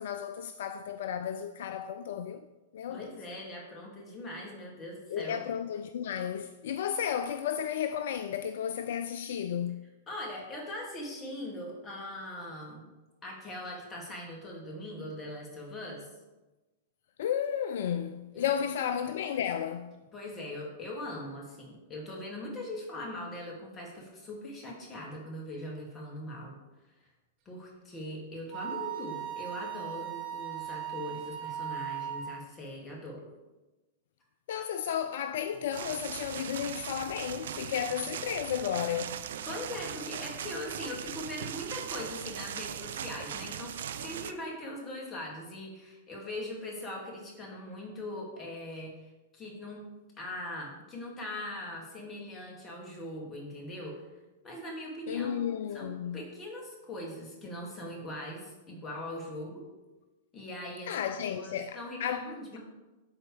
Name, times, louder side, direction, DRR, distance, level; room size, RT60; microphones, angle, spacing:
voice 1, 0.0-2.4 2.7-3.1 5.1-9.9 17.2-20.0 34.5-39.2 55.1-56.2 60.9-62.3, left 9 dB, 65° left, 0.4 m, -33 dB
voice 2, 2.9-5.4 10.1-12.9 13.2-16.1 18.3-18.5 20.1-26.6 27.5-33.3 39.5-49.0 49.3-49.8 50.2-54.0 54.4-59.6 60.3-61.0 61.3-62.6, left 1 dB, 20° left, 2.4 m, -41 dB
Wind instrument woodwind instrument, 28.5-32.4, right 10 dB, 45° right, 1.7 m, -38 dB
sound 1, 35.7-44.3, right 9 dB, 70° right, 0.5 m, -39 dB
11.5 x 4.5 x 3.4 m
hypercardioid pair, 110°, 0 cm